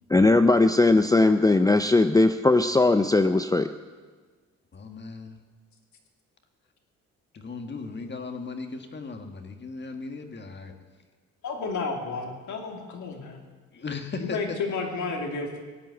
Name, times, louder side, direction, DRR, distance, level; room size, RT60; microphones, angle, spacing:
voice 1, 0.1-3.7, left 2 dB, 10° left, 9 dB, 0.5 m, -19 dB
voice 2, 4.7-5.4 7.4-10.8 13.7-14.6, left 4 dB, 35° left, 5 dB, 1.8 m, -37 dB
voice 3, 11.4-13.4 14.2-15.6, left 4 dB, 70° left, 2 dB, 2.9 m, -31 dB
17.0 x 9.1 x 8.1 m, 1.4 s
cardioid pair, 90°, 30 cm